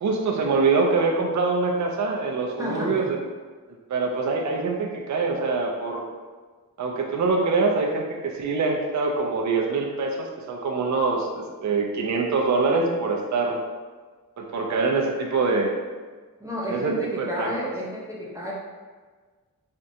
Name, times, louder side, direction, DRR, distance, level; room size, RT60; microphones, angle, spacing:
voice 1, 0.0-3.2 3.9-6.1 6.8-13.6 14.4-15.7 16.6-17.5, right 3 dB, 55° right, 0 dB, 0.5 m, -24 dB
voice 2, 2.6-3.1 16.4-18.5, equal, 10° right, -6 dB, 0.7 m, -31 dB
4.4 x 2.4 x 2.7 m, 1.4 s
wide cardioid pair, 85°, 35 cm